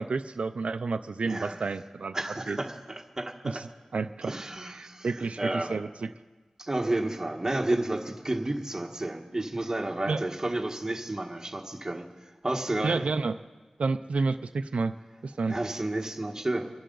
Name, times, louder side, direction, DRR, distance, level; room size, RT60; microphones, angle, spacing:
voice 1, 0.0-2.1 2.5-2.6 3.9-4.3 4.8-5.4 5.7-6.1 10.1-10.2 12.8-13.3 13.8-14.9 15.2-15.5, right 4 dB, 80° right, 9 dB, 0.4 m, -29 dB
voice 2, 1.2-1.7 2.1-3.6 4.2-5.7 6.6-13.0 15.5-16.7, right 1 dB, 25° right, 2 dB, 1.4 m, -31 dB
25.0 x 11.0 x 3.9 m, 1.3 s
wide cardioid pair, 80°, 2 cm